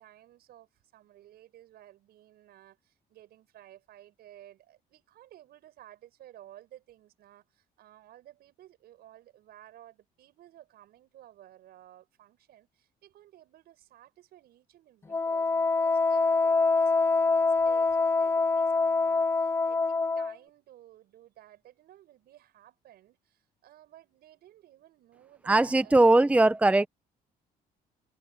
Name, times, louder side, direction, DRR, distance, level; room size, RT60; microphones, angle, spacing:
voice 1, 0.0-26.1, right 13 dB, 75° right, 7.4 m, -55 dB
Wind instrument woodwind instrument, 15.1-20.3, left 3 dB, 15° left, 0.4 m, -25 dB
voice 2, 25.5-26.9, right 2 dB, 10° right, 0.8 m, -20 dB
cardioid pair, 100°, 16 cm